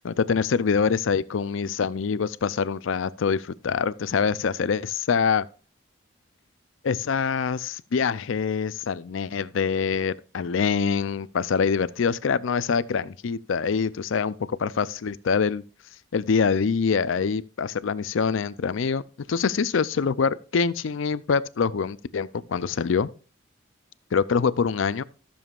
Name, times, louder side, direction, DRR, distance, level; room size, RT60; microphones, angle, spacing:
voice 1, 0.0-5.4 6.8-15.6 16.1-19.0 19.3-23.1 24.1-25.0, left 5 dB, 80° left, 0.5 m, -25 dB
14.0 x 7.1 x 2.4 m
head